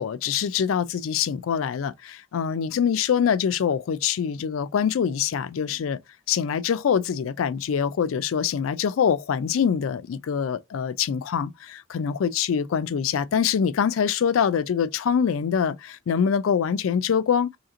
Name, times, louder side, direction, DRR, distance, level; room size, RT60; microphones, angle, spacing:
voice 1, 0.0-6.0 6.3-17.6, left 7 dB, 80° left, 0.4 m, -24 dB
2.8 x 2.8 x 3.7 m
head